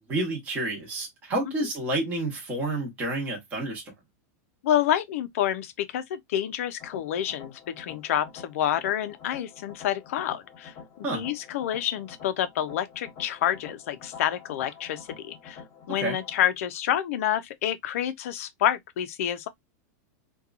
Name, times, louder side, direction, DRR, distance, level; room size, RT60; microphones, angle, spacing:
voice 1, 0.1-3.9 11.0-11.2 16.0-16.2, right 2 dB, 15° right, 0.9 m, -29 dB
voice 2, 4.6-15.6 15.9-19.5, left 11 dB, 55° left, 0.4 m, -28 dB
sound 1, 6.8-16.5, left 6 dB, 25° left, 1.0 m, -47 dB
2.7 x 2.2 x 2.4 m
supercardioid pair, 175°, 9 cm